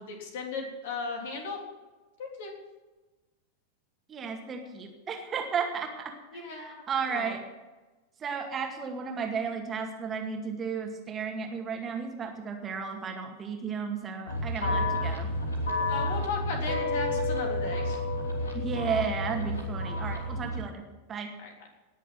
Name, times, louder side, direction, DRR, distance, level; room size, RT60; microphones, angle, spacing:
voice 1, 0.0-1.6 2.2-2.5 6.3-7.3 14.6-15.0 15.8-18.0 21.4-21.5, left 3 dB, 55° left, 1 dB, 3.6 m, -36 dB
voice 2, 4.1-7.4 8.2-15.3 18.5-21.3, right 6 dB, 25° right, 3 dB, 2.1 m, -34 dB
sound 1, 14.3-20.6, left 2 dB, 75° left, 3.1 m, -30 dB
19.0 x 7.3 x 7.7 m, 1.2 s
figure-of-eight pair, 90°, 0 cm